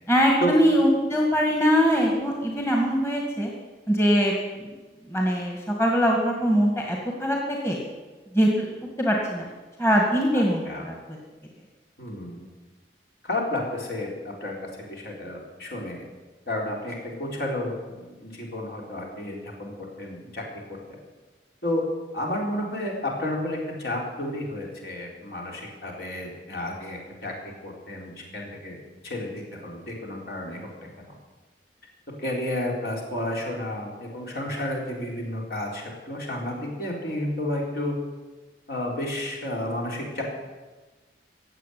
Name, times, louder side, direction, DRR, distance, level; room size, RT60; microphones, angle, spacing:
voice 1, 0.1-3.5 3.9-4.7 5.1-7.8 8.3-8.7 9.0-9.5 9.8-10.9, equal, 15° left, 0 dB, 2.1 m, -22 dB
voice 2, 10.3-10.8 12.0-12.5 13.2-16.0 16.5-19.7 20.0-20.4 20.9-21.0 21.6-21.8 22.1-27.3 27.6-28.8 29.0-30.7 32.2-37.9 38.7-40.2, left 1 dB, 60° left, -1 dB, 4.1 m, -31 dB
17.0 x 7.7 x 9.4 m, 1.3 s
head